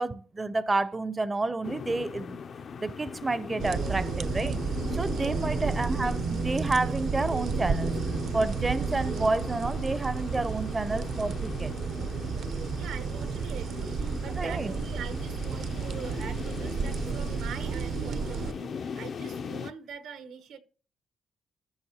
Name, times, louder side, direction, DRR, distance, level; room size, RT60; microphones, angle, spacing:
voice 1, 0.0-2.4 2.8-4.6 4.9-7.9 8.3-11.7 14.4-14.7, right 2 dB, 20° right, 0.5 m, -30 dB
sound 1, 1.6-19.7, left 6 dB, 55° left, 0.4 m, -39 dB
sound 2, 3.6-18.5, right 6 dB, 70° right, 0.7 m, -32 dB
voice 2, 5.1-5.7 12.7-20.6, right 7 dB, 85° right, 1.0 m, -43 dB
13.0 x 6.2 x 2.8 m
cardioid pair, 90°, 0 cm